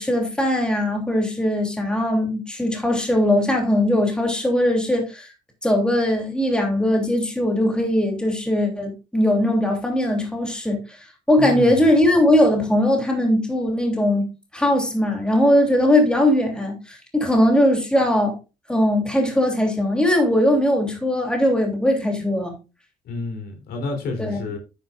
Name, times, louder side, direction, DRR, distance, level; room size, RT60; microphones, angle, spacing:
voice 1, 0.0-5.3 5.6-10.8 11.3-14.3 14.5-18.3 18.7-22.6 24.2-24.4, left 1 dB, 5° left, 3.0 m, -20 dB
voice 2, 11.4-11.9 23.0-24.6, left 3 dB, 70° left, 3.3 m, -30 dB
9.5 x 9.2 x 2.5 m
cardioid pair, 110°, 17 cm